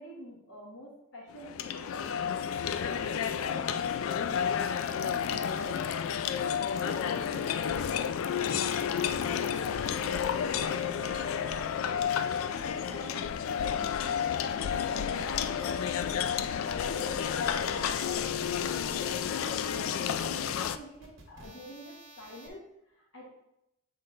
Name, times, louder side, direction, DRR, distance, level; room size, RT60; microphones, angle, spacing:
voice 1, 0.0-5.8 6.2-8.0 8.5-13.3 13.5-15.9 16.5-23.3, left 1 dB, 65° left, -4 dB, 1.7 m, -46 dB
sound 1, 1.3-20.8, left 8 dB, 90° left, 0.3 m, -31 dB
sound 2, 17.3-22.5, right 2 dB, 85° right, 1.5 m, -53 dB
7.6 x 3.8 x 3.8 m, 0.84 s
head